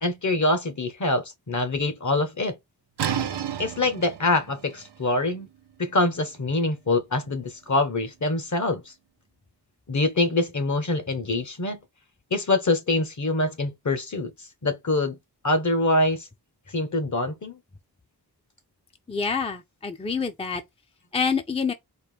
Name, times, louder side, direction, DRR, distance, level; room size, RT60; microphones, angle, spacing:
voice 1, 0.0-2.6 3.6-5.5 5.8-8.9 9.9-11.8 12.3-14.3 14.6-15.2 15.4-16.3 16.7-17.6, left 2 dB, 45° left, 1.0 m, -25 dB
sound 1, 3.0-8.6, right 9 dB, 85° right, 0.6 m, -35 dB
voice 2, 19.1-20.6 21.1-21.7, left 5 dB, 15° left, 0.5 m, -27 dB
4.4 x 2.1 x 3.2 m
wide cardioid pair, 75°, 40 cm